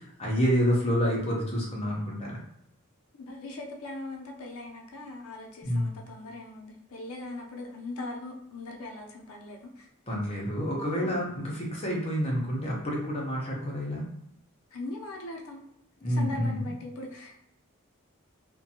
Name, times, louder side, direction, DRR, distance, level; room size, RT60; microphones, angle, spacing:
voice 1, 0.0-2.4 5.6-5.9 10.1-14.0 16.0-16.7, equal, 30° left, -3 dB, 0.6 m, -28 dB
voice 2, 3.1-9.9 11.0-11.1 14.7-15.6 16.1-17.4, left 2 dB, 80° left, 1 dB, 0.5 m, -40 dB
2.5 x 2.2 x 2.7 m, 0.76 s
head